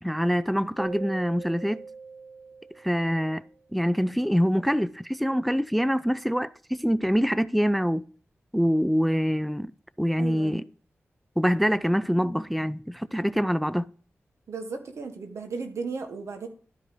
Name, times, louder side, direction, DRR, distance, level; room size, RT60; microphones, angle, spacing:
voice 1, 0.0-1.8 2.8-3.4 3.7-8.1 8.5-9.7 10.0-10.6 11.4-13.9, equal, ahead, 0.4 m, -25 dB
Keyboard (musical), 0.8-3.5, right 4 dB, 45° right, 2.7 m, -41 dB
voice 2, 10.2-10.6 14.5-16.5, right 4 dB, 80° right, 1.5 m, -35 dB
12.0 x 4.9 x 5.3 m
cardioid pair, 50°, 5 cm